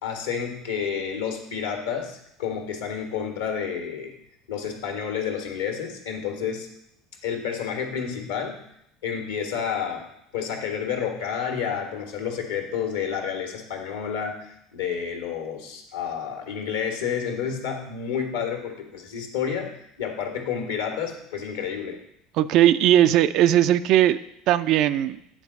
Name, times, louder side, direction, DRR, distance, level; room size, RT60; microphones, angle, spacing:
voice 1, 0.0-4.1 4.5-6.7 7.2-8.6 9.0-10.0 10.3-19.7 20.0-22.0, left 7 dB, 70° left, 4 dB, 1.6 m, -30 dB
voice 2, 22.4-24.2 24.5-25.2, right 12 dB, 50° right, 13 dB, 0.4 m, -18 dB
8.8 x 4.5 x 6.6 m, 0.78 s
figure-of-eight pair, 70°, 0 cm